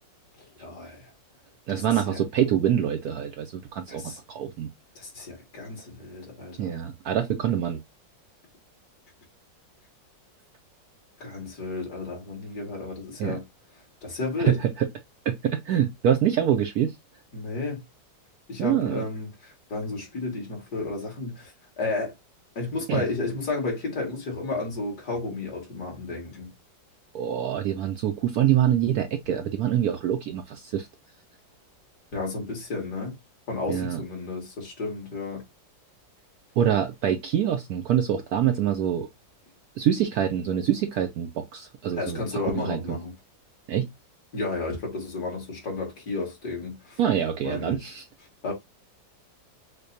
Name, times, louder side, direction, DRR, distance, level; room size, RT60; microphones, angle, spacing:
voice 1, 0.4-1.1 1.7-2.2 3.9-4.2 5.0-6.8 11.2-13.4 14.0-14.6 17.3-17.8 18.5-22.1 22.6-26.5 32.1-33.1 33.5-35.4 42.0-43.1 44.3-47.0 47.4-47.9 48.4-48.5, left 3 dB, 55° left, 2.4 m, -32 dB
voice 2, 1.7-4.0 4.3-4.7 6.6-7.8 13.2-13.4 14.5-14.9 15.3-16.9 18.6-19.0 22.9-23.0 27.1-30.9 33.7-34.0 36.6-39.1 39.8-42.2 42.5-43.0 43.7-43.9 47.0-48.0, right 10 dB, 70° right, 0.9 m, -25 dB
6.5 x 2.2 x 2.6 m
omnidirectional pair, 2.0 m